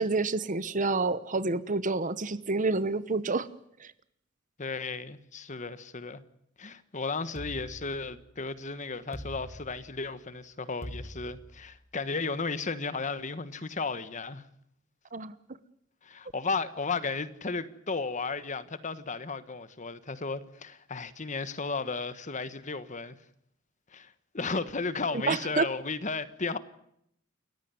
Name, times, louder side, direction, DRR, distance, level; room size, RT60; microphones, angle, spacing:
voice 1, 0.0-3.5 15.1-15.3 25.3-25.7, right 3 dB, 40° right, 1.0 m, -28 dB
voice 2, 4.6-6.2 6.6-14.5 16.0-23.2 23.9-26.6, left 4 dB, 40° left, 1.3 m, -34 dB
sound 1, 7.4-8.5 9.1-10.2 10.8-11.9, equal, 15° left, 2.7 m, -44 dB
29.0 x 15.0 x 9.5 m
head